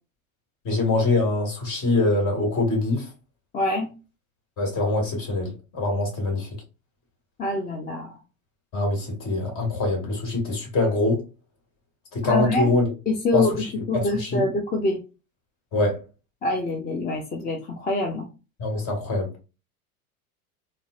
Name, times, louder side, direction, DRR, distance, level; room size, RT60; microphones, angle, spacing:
voice 1, 0.6-3.1 4.6-6.5 8.7-11.2 12.1-12.8 13.3-14.5 15.7-16.0 18.6-19.3, left 2 dB, 45° left, 1.8 m, -24 dB
voice 2, 3.5-3.9 7.4-8.1 12.2-12.7 13.1-13.5 13.9-15.0 16.4-18.3, left 2 dB, 20° left, 0.6 m, -25 dB
3.9 x 2.2 x 2.4 m
hypercardioid pair, 80°, 45 cm